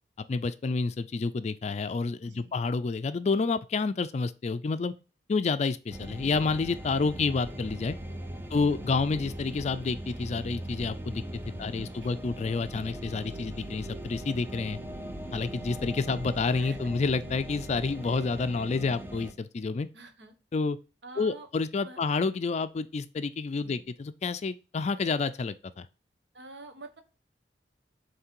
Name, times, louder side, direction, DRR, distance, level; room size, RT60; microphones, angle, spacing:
voice 1, 0.3-4.9 5.3-8.0 8.5-11.2 11.6-14.8 15.3-19.9 20.5-20.8 21.2-25.9, left 4 dB, 40° left, 0.3 m, -29 dB
voice 2, 2.2-2.6 6.8-7.1 8.6-9.0 11.5-12.3 16.6-17.0 19.9-20.3 21.0-21.5 21.8-22.0 23.6-23.8 26.3-27.0, right 3 dB, 80° right, 1.3 m, -48 dB
sound 1, 5.9-19.3, right 1 dB, 10° right, 0.6 m, -40 dB
7.5 x 3.3 x 4.5 m
head